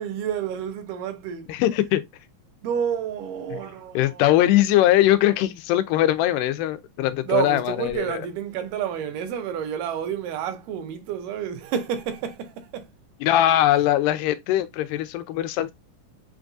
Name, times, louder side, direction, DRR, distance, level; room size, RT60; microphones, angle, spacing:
voice 1, 0.0-1.5 2.6-4.5 7.2-12.9, right 9 dB, 85° right, 2.3 m, -29 dB
voice 2, 1.5-2.0 4.0-8.2 13.2-15.7, left 13 dB, 90° left, 2.2 m, -21 dB
5.7 x 2.3 x 2.5 m
omnidirectional pair, 3.7 m